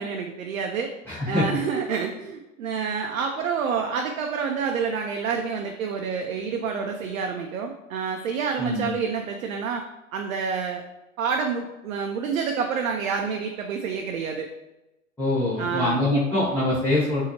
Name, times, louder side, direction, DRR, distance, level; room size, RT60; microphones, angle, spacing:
voice 1, 0.0-0.9 1.3-9.8 10.1-10.8 11.2-14.5 15.6-16.0, right 6 dB, 80° right, 3 dB, 0.5 m, -28 dB
voice 2, 1.1-1.4 8.6-8.9 15.2-17.2, left 1 dB, 5° left, -11 dB, 0.9 m, -24 dB
4.1 x 2.7 x 2.8 m, 0.98 s
hypercardioid pair, 105°, 40 cm